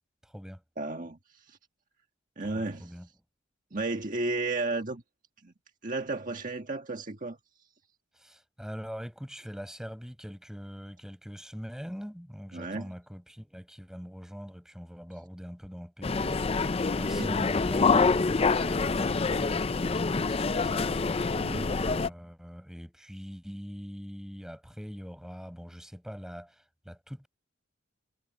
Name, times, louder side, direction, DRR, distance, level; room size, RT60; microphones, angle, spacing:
voice 1, 0.2-0.6 2.4-3.1 8.1-16.5 16.9-20.9 21.6-27.3, equal, 5° right, 5.1 m, -43 dB
voice 2, 0.8-1.6 2.4-2.9 3.7-5.0 5.4-5.5 5.8-7.4 12.5-12.9 17.1-17.3 21.3-21.7, right 2 dB, 40° right, 1.6 m, -33 dB
sound 1, 16.0-22.1, left 4 dB, 30° left, 0.4 m, -26 dB
head